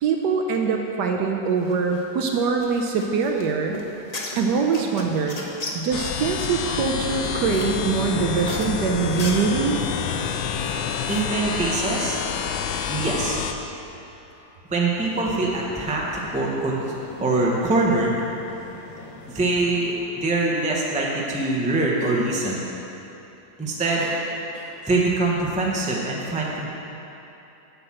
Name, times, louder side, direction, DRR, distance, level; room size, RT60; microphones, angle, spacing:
voice 1, 0.0-3.8 4.4-5.4 5.7-9.8, right 5 dB, 70° right, 3 dB, 1.1 m, -23 dB
sound 1, 1.5-11.2, left 1 dB, 35° left, 0.6 m, -37 dB
sound 2, 5.9-13.5, left 7 dB, 85° left, 1.3 m, -28 dB
voice 2, 11.1-12.2 12.9-13.4 14.7-16.8 17.2-18.2 19.3-22.7 23.6-24.2 24.5-26.7, right 2 dB, 5° right, -3 dB, 0.6 m, -24 dB
sound 3, 14.9-20.0, left 1 dB, 55° left, 2.4 m, -43 dB
7.8 x 5.9 x 7.5 m, 3.0 s
omnidirectional pair, 2.1 m